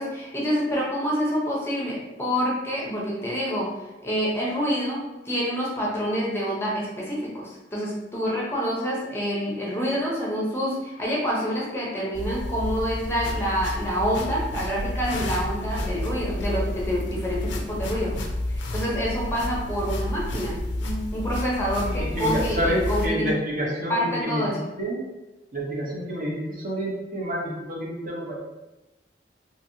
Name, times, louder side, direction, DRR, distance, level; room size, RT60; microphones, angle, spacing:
voice 1, 0.0-3.7 4.0-18.2 18.5-23.3 23.9-24.6, equal, 15° left, -4 dB, 0.5 m, -27 dB
sound 1, 12.1-23.1, left 1 dB, 75° left, 0.4 m, -30 dB
voice 2, 21.9-25.0 25.5-28.4, equal, 50° right, -4 dB, 0.8 m, -28 dB
2.8 x 2.7 x 2.7 m, 1.0 s
head